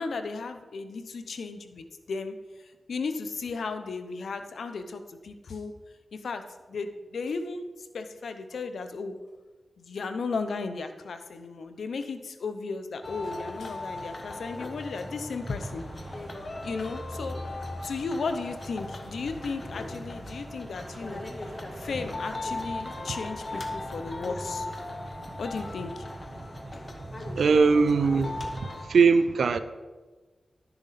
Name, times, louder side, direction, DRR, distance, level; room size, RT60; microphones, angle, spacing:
voice 1, 0.0-2.4 2.9-5.7 6.1-9.2 9.8-15.8 16.6-17.4 17.8-21.2 21.8-24.7 25.4-26.1, left 4 dB, 90° left, 0.7 m, -35 dB
sound 1, 13.0-28.9, left 2 dB, 45° left, 1.1 m, -38 dB
sound 2, 15.4-28.6, right 2 dB, 45° right, 0.6 m, -44 dB
voice 2, 27.3-29.6, right 4 dB, 85° right, 0.5 m, -21 dB
11.5 x 6.9 x 4.2 m
cardioid pair, 55°, 0 cm